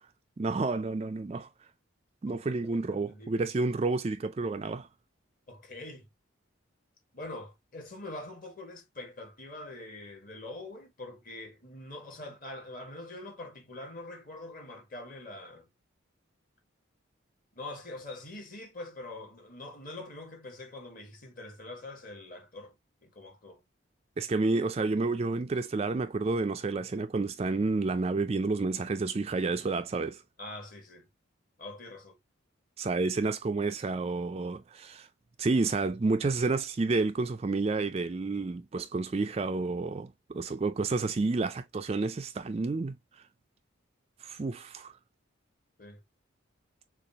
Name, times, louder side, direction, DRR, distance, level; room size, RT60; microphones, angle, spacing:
voice 1, 0.4-1.5 2.2-4.9 24.2-30.2 32.8-35.1 35.4-43.0 44.2-44.9, right 3 dB, 30° right, 0.3 m, -30 dB
voice 2, 2.3-3.5 5.5-6.1 7.1-15.7 17.5-23.6 30.4-31.1 31.6-32.2 45.8-46.0, left 2 dB, 40° left, 1.7 m, -44 dB
6.7 x 2.5 x 2.8 m
head